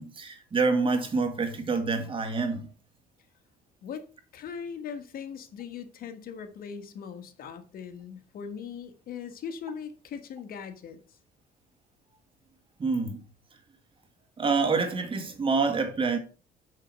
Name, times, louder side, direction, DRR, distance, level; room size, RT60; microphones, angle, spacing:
voice 1, 0.0-2.7 12.8-13.2 14.4-16.2, right 4 dB, 30° right, 1.9 m, -27 dB
voice 2, 4.3-11.2, left 7 dB, 60° left, 1.4 m, -40 dB
6.4 x 6.4 x 6.1 m
cardioid pair, 110°, 17 cm